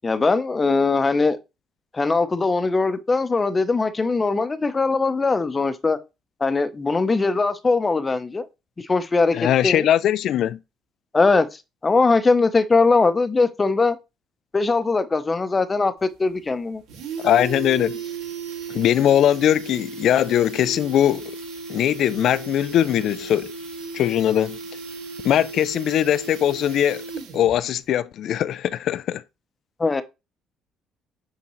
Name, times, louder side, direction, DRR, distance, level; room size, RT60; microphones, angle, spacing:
voice 1, 0.0-1.4 1.9-6.0 6.4-8.5 8.8-9.9 11.1-11.5 11.8-14.0 14.5-16.8 29.8-30.0, left 3 dB, 20° left, 0.7 m, -20 dB
voice 2, 9.3-10.6 17.2-18.0 18.7-21.4 21.7-23.5 23.9-24.6 25.2-27.0 27.3-29.2, left 11 dB, 60° left, 0.3 m, -20 dB
sound 1, 16.0-16.1 16.4-16.5 16.7-27.6 27.9-28.0, right 4 dB, 80° right, 2.0 m, -35 dB
8.5 x 3.7 x 3.0 m
cardioid pair, 110°, 0 cm